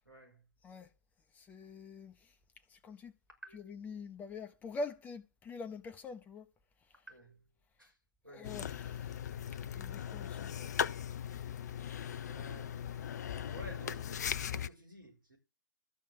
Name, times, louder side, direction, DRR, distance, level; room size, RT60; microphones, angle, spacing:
voice 1, 0.0-0.4 3.4-3.9 7.1-7.4 7.8-7.9 8.2-8.8 12.2-12.9 13.5-15.4, right 1 dB, 85° right, 6.2 m, -53 dB
voice 2, 1.4-2.1 2.7-3.1 3.5-6.5 8.3-9.0 9.7-10.5, left 3 dB, 15° left, 1.1 m, -44 dB
sound 1, 8.4-14.7, left 9 dB, 55° left, 0.7 m, -39 dB
13.5 x 5.2 x 8.1 m
figure-of-eight pair, 110°, 11 cm